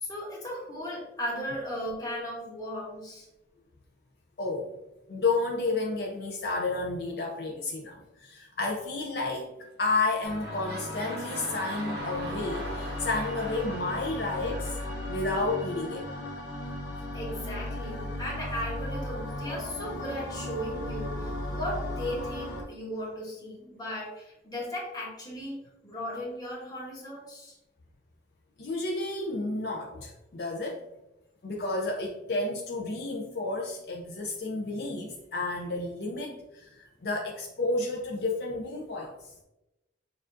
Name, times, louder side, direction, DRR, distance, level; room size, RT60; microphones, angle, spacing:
voice 1, 0.0-3.3 17.1-25.6 25.8-27.6, equal, 20° left, -4 dB, 1.1 m, -36 dB
voice 2, 4.4-4.7 5.1-14.8 15.1-16.1 28.6-30.8 31.4-39.3, left 3 dB, 60° left, 0 dB, 0.5 m, -31 dB
sound 1, 9.6-9.9 10.1-16.0 16.6-16.7, right 2 dB, 60° right, 0.6 m, -42 dB
sound 2, 10.2-22.6, left 1 dB, 80° left, 0.8 m, -36 dB
6.5 x 2.4 x 2.5 m, 0.94 s
head